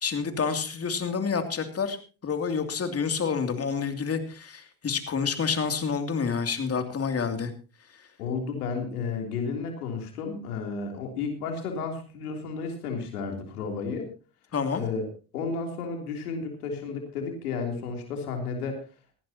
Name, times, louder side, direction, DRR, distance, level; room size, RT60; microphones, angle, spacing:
voice 1, 0.0-2.0 2.2-7.5 14.5-14.8, left 5 dB, 30° left, 7 dB, 2.8 m, -28 dB
voice 2, 8.2-14.1 14.7-15.1 15.3-18.8, left 5 dB, 90° left, 3 dB, 3.4 m, -32 dB
19.0 x 14.5 x 2.9 m, 0.35 s
hypercardioid pair, 80°, 44 cm